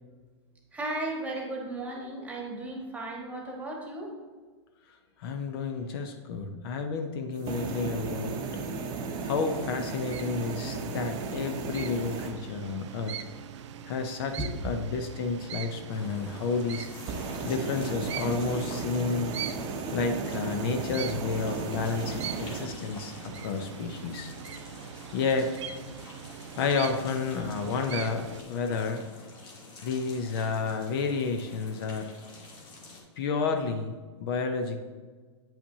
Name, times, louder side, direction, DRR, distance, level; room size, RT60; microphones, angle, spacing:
voice 1, 0.7-4.1 14.4-14.5, right 2 dB, 10° right, -1 dB, 1.3 m, -35 dB
voice 2, 5.2-8.3 9.2-13.2 13.9-14.4 14.6-16.9 17.4-19.4 19.9-24.3 25.1-25.5 26.6-29.0 29.8-32.1 33.2-34.8, left 4 dB, 50° left, 6 dB, 0.6 m, -31 dB
sound 1, 7.3-12.3 16.9-22.7, right 4 dB, 30° right, 0.8 m, -35 dB
sound 2, 9.9-28.4, right 9 dB, 75° right, 0.5 m, -42 dB
sound 3, 15.9-33.0, left 2 dB, 30° left, 1.5 m, -48 dB
8.6 x 5.7 x 2.7 m, 1.4 s
hypercardioid pair, 140°, 16 cm